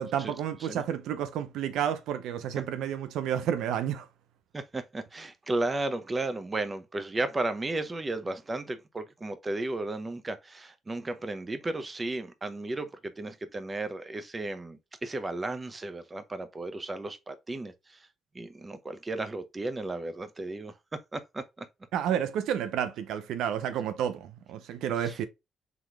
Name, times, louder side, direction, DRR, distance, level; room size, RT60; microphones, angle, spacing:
voice 1, 0.0-4.1 21.9-25.3, right 9 dB, 85° right, 0.5 m, -30 dB
voice 2, 4.5-18.1 18.3-21.7 25.0-25.2, right 2 dB, 25° right, 0.7 m, -34 dB
4.0 x 3.0 x 3.3 m
cardioid pair, 90°, 0 cm